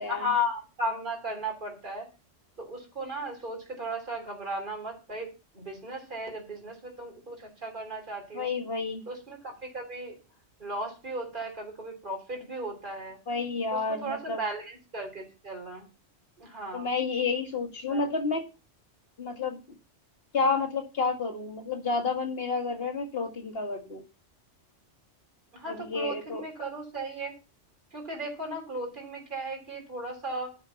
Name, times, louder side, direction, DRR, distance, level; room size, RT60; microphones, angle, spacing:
voice 1, 0.1-2.1 2.6-8.5 9.1-10.2 10.6-13.2 13.7-15.9 16.4-16.9 17.9-18.1 25.5-27.3 27.9-30.6, equal, 45° right, 0 dB, 3.5 m, -35 dB
voice 2, 8.3-9.0 13.3-14.4 16.7-18.5 19.2-19.6 20.3-24.0 25.7-26.4, left 4 dB, 55° left, 5 dB, 2.1 m, -30 dB
11.5 x 5.5 x 6.9 m, 0.31 s
omnidirectional pair, 1.2 m